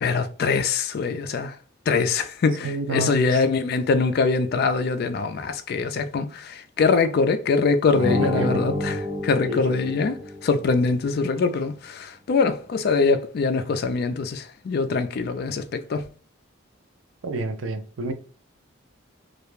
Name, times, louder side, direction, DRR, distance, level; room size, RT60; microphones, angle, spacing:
voice 1, 0.0-1.6 1.9-16.1, left 4 dB, 50° left, 0.3 m, -23 dB
voice 2, 2.6-3.4 8.2-8.6 9.5-9.9 17.2-18.1, right 3 dB, 85° right, 0.5 m, -30 dB
sound 1, 7.9-10.6, left 1 dB, 30° right, 0.5 m, -28 dB
2.3 x 2.1 x 3.0 m
head